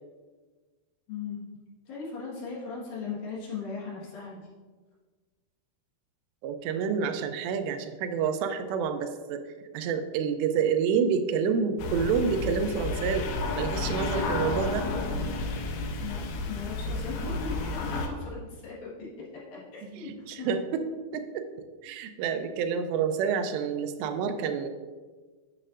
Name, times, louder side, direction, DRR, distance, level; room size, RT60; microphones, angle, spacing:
voice 1, 1.1-1.5 1.9-4.4 16.0-20.1 20.4-20.5, left 5 dB, 65° left, -5 dB, 3.0 m, -38 dB
voice 2, 6.4-9.4 9.7-13.3 13.6-14.9 19.8-20.8 21.1-21.4 21.8-24.7, right 6 dB, 90° right, 7 dB, 2.8 m, -28 dB
sound 1, 11.8-18.1, left 3 dB, 80° left, 2.5 m, -31 dB
9.8 x 6.4 x 2.5 m, 1.4 s
omnidirectional pair, 4.9 m